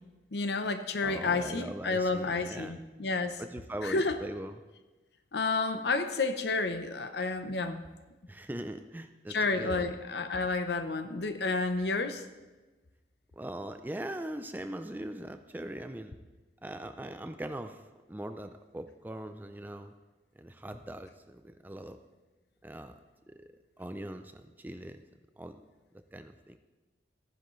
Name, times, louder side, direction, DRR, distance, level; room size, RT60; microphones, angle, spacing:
voice 1, 0.3-3.4 3.8-4.2 5.3-7.8 9.3-12.2, left 3 dB, 70° left, 9 dB, 0.7 m, -30 dB
voice 2, 1.0-2.8 3.4-4.6 8.3-9.9 13.3-16.2 16.6-17.8 18.1-19.9 20.4-22.0 22.6-22.9 23.3-23.4 23.8-25.0 25.4-25.6 26.1-26.6, right 1 dB, 10° right, 8 dB, 0.4 m, -41 dB
14.0 x 10.0 x 3.1 m, 1.2 s
head